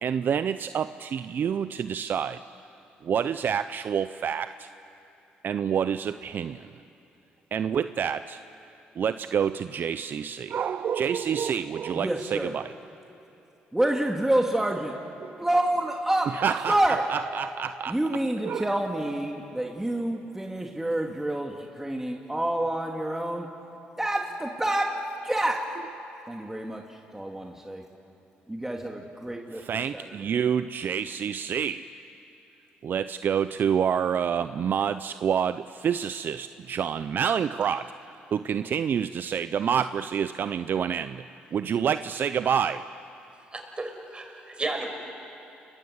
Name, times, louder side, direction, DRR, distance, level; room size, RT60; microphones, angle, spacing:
voice 1, 0.0-2.4 3.0-4.7 5.4-6.7 7.5-8.4 9.0-12.7 15.2-15.4 16.3-18.0 18.4-18.7 29.5-31.9 32.8-42.8, right 8 dB, 55° right, 12 dB, 0.6 m, -28 dB
voice 2, 11.9-12.5 13.7-14.9 15.4-16.3 16.7-17.0 17.9-23.5 24.0-25.0 25.2-25.7 26.3-26.8 27.1-27.8 28.5-29.6 29.9-30.1, right 1 dB, 10° right, 1 dB, 2.4 m, -27 dB
voice 3, 43.5-44.9, right 2 dB, 25° right, 4 dB, 5.5 m, -33 dB
29.5 x 21.0 x 8.1 m, 3.0 s
supercardioid pair, 60°, 4 cm